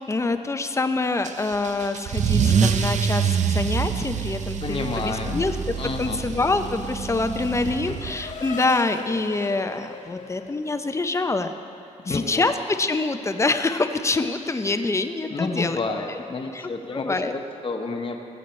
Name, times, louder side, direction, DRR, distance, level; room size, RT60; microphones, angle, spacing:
voice 1, 0.0-5.5 6.0-11.5 12.1-15.8 16.1-16.2 16.5-16.6 16.9-17.3, left 3 dB, 20° left, 8 dB, 0.5 m, -25 dB
Car / Engine starting / Accelerating revving vroom, 1.2-8.4, right 7 dB, 65° right, 0.6 m, -26 dB
voice 2, 4.6-5.5 5.8-6.2 7.9-8.0 12.0-12.4 15.3-18.2, left 3 dB, 40° left, 4 dB, 1.0 m, -30 dB
Race car auto racing / Accelerating revving vroom, 6.0-11.6, left 6 dB, 65° left, 0.6 m, -42 dB
17.0 x 8.3 x 3.2 m, 2.8 s
cardioid pair, 95°, 13 cm